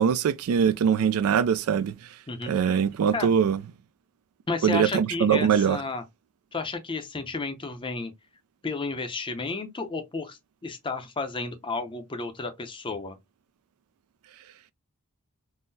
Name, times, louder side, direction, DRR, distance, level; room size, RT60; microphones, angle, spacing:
voice 1, 0.0-1.9 2.5-3.6 4.6-5.8, right 7 dB, 70° right, 0.3 m, -22 dB
voice 2, 2.3-2.8 3.1-3.3 4.5-6.0 6.5-8.1 8.6-13.2, left 3 dB, 20° left, 0.5 m, -32 dB
3.6 x 2.0 x 2.6 m
head